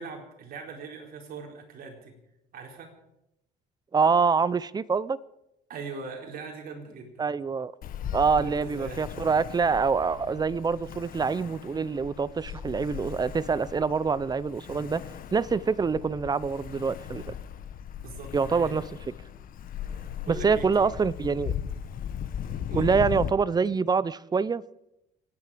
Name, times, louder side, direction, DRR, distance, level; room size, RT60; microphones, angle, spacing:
voice 1, 0.0-2.2 2.5-2.9 5.7-7.2 8.4-9.1 18.0-18.8 20.2-20.9 22.7-23.2, right 5 dB, 60° right, 1 dB, 4.3 m, -40 dB
voice 2, 3.9-5.2 7.2-7.7 8.1-15.0 15.3-17.2 18.3-18.8 20.3-21.5 22.7-24.6, right 5 dB, 25° right, 19 dB, 0.6 m, -25 dB
Ocean, 7.8-23.3, left 9 dB, 55° left, 1.2 m, -38 dB
28.0 x 10.0 x 5.0 m, 0.85 s
cardioid pair, 110°, 17 cm